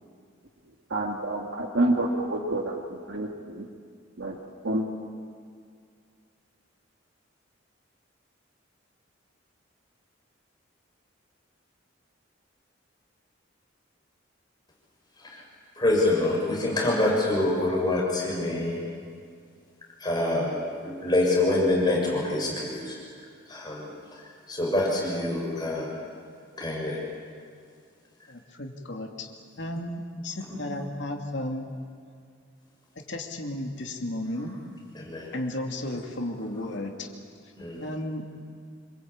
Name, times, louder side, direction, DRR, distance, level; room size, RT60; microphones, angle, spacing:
voice 1, 0.9-2.8 3.1-3.3 3.6-3.7 4.2-4.4 4.6-4.9, right 1 dB, 80° right, 1 dB, 1.9 m, -27 dB
voice 2, 15.8-18.8 20.0-23.0 23.5-23.9 24.5-25.9 26.6-27.0 30.5-30.6 34.9-35.3 37.6-37.8, left 2 dB, 20° left, -3 dB, 6.6 m, -26 dB
voice 3, 28.3-29.3 29.6-31.7 32.9-34.6 35.3-37.1 37.8-38.3, left 1 dB, 65° left, 2 dB, 2.7 m, -34 dB
27.0 x 21.5 x 8.6 m, 2.2 s
head